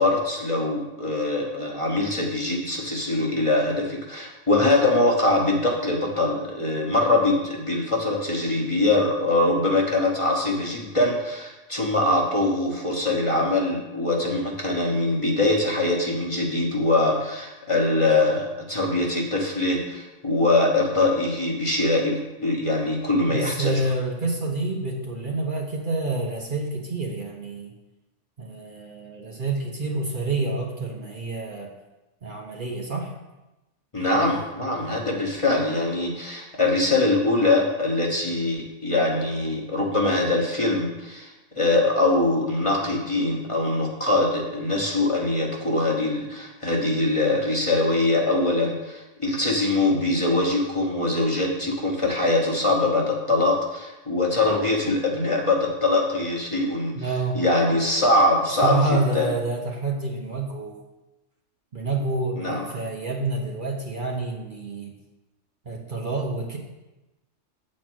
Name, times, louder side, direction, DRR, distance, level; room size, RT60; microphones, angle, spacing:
voice 1, 0.0-23.9 33.9-57.0 57.3-59.3 62.4-62.6, left 2 dB, 25° left, -1 dB, 1.1 m, -23 dB
voice 2, 23.3-27.8 28.4-31.7 32.2-33.1 57.0-57.4 58.6-60.8 61.7-65.0 65.6-66.6, right 2 dB, 45° right, 0 dB, 1.0 m, -28 dB
8.1 x 4.3 x 6.1 m, 1.0 s
omnidirectional pair, 1.3 m